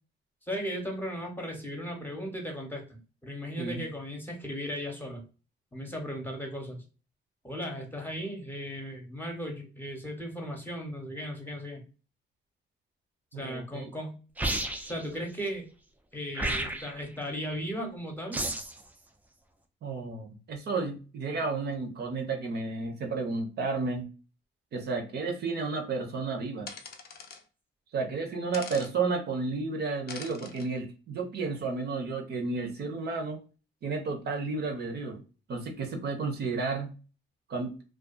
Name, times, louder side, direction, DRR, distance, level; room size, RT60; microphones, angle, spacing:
voice 1, 0.4-5.2 5.7-6.8 7.4-11.8 13.3-14.1 14.8-15.6 16.1-18.4, equal, 10° left, 1 dB, 0.8 m, -36 dB
voice 2, 13.3-13.9 19.8-24.1 24.7-26.7 27.9-33.4 33.8-35.2 35.5-36.9 37.5-37.7, right 4 dB, 55° right, 4 dB, 0.6 m, -32 dB
sound 1, 14.4-15.0 16.3-17.0 18.3-18.8, right 1 dB, 10° right, 0.4 m, -31 dB
sound 2, 26.7-27.4 28.5-28.9 30.1-30.7, left 5 dB, 55° left, 0.5 m, -43 dB
2.4 x 2.3 x 2.3 m, 0.35 s
cardioid pair, 90°, 20 cm